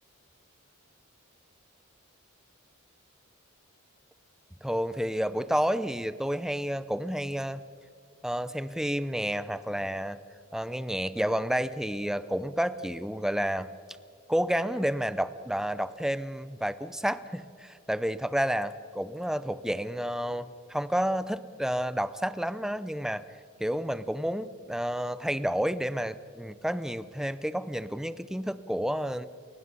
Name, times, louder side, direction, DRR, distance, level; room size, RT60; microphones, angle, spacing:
voice 1, 4.6-7.6 8.2-10.2 10.5-13.7 14.3-23.2 23.6-29.3, equal, 5° right, 14 dB, 0.6 m, -30 dB
29.0 x 16.0 x 5.5 m, 2.3 s
head